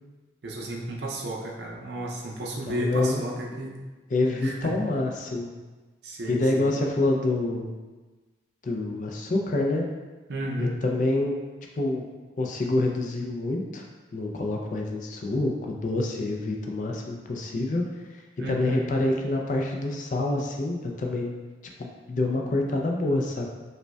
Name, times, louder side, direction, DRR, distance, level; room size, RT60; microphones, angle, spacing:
voice 1, 0.4-3.8 4.4-4.7 6.0-6.7 10.3-10.8 18.4-18.8, right 1 dB, 65° right, -2 dB, 0.5 m, -32 dB
voice 2, 2.7-3.2 4.1-5.5 6.3-7.8 8.6-9.9 10.6-11.3 11.8-12.0 12.4-13.8 14.1-17.8 18.1-18.2 18.5-21.3 21.8-23.5, left 2 dB, 45° left, 1 dB, 0.4 m, -27 dB
4.9 x 2.2 x 2.2 m, 1.2 s
head